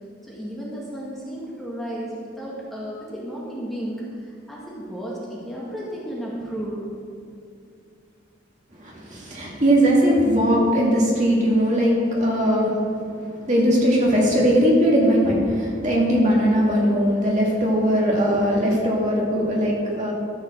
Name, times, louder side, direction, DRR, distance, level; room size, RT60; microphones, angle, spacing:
voice 1, 0.2-6.8, equal, ahead, -6 dB, 1.7 m, -33 dB
voice 2, 8.7-12.8 13.2-20.1, equal, 40° right, -4 dB, 2.4 m, -20 dB
13.5 x 5.6 x 6.7 m, 2.5 s
head